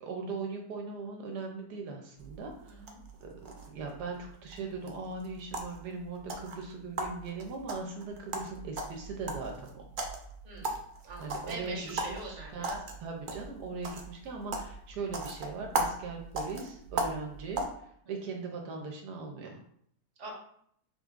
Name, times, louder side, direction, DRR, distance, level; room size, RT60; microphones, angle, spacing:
voice 1, 0.0-2.9 3.2-3.3 3.6-9.8 11.2-19.6, right 4 dB, 85° right, 1 dB, 1.3 m, -39 dB
sound 1, 2.2-17.7, right 2 dB, 70° right, 0.4 m, -39 dB
voice 2, 2.6-3.0 10.4-12.7 18.0-18.3 20.2-20.3, right 2 dB, 30° right, -3 dB, 1.0 m, -44 dB
5.4 x 3.9 x 2.4 m, 0.66 s
omnidirectional pair, 1.7 m